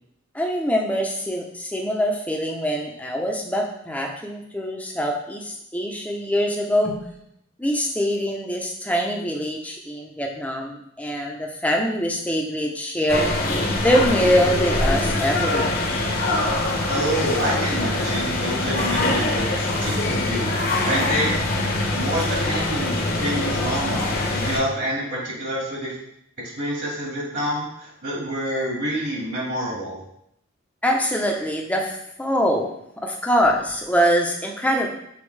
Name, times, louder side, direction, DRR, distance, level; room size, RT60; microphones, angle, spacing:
voice 1, 0.3-7.0 7.6-13.3 13.8-15.8 30.8-32.7 33.0-34.9, equal, 5° left, 1 dB, 0.7 m, -23 dB
sound 1, 13.1-24.6, left 2 dB, 45° left, 1.0 m, -23 dB
voice 2, 16.9-20.5 20.8-21.3 21.9-25.9 26.6-30.0, right 1 dB, 55° right, -4 dB, 2.1 m, -27 dB
7.1 x 4.3 x 3.3 m, 0.76 s
head